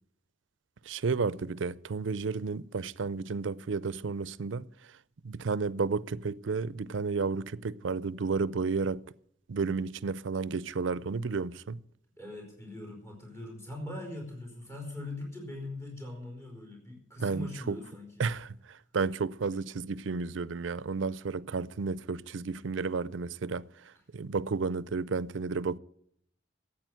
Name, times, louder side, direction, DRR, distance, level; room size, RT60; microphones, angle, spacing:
voice 1, 0.8-4.7 5.2-9.0 9.5-11.8 17.2-17.8 18.2-25.8, right 4 dB, 90° right, 0.5 m, -32 dB
voice 2, 12.2-18.3, left 2 dB, 15° left, 4.8 m, -41 dB
13.5 x 8.7 x 9.1 m
head